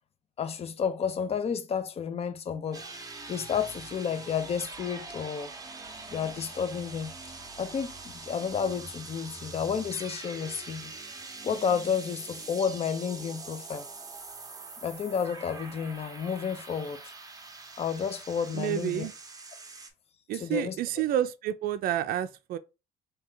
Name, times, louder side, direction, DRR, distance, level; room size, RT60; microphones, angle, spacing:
voice 1, 0.4-5.5 6.1-7.1 7.6-10.9 11.4-13.9 14.8-17.0 17.8-19.1 20.3-20.8, left 7 dB, 35° left, 0.5 m, -31 dB
sound 1, 2.7-19.9, right 3 dB, 20° right, 0.7 m, -44 dB
voice 2, 18.5-19.1 20.3-22.6, right 11 dB, 60° right, 0.4 m, -29 dB
3.2 x 2.8 x 3.7 m
cardioid pair, 110°, 17 cm